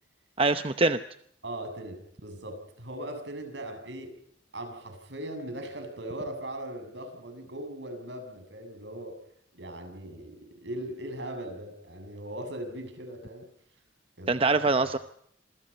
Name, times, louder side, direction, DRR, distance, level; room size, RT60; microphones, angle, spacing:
voice 1, 0.4-1.0 14.3-15.0, right 3 dB, 30° right, 10 dB, 0.9 m, -23 dB
voice 2, 1.4-2.0 2.2-4.1 4.5-9.2 9.5-13.5 14.2-14.6, right 1 dB, 70° right, 6 dB, 7.6 m, -39 dB
27.0 x 23.5 x 5.5 m, 0.68 s
head